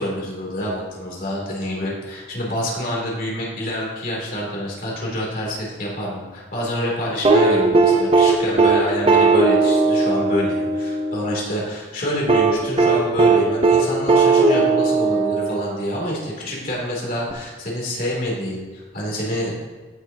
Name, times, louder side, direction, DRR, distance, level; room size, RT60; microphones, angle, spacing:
voice 1, 0.0-19.5, equal, 55° left, -4 dB, 3.0 m, -27 dB
sound 1, 7.2-11.3 12.3-15.9 17.3-17.4, right 3 dB, 35° right, 0.9 m, -17 dB
15.5 x 6.5 x 2.9 m, 1.3 s
head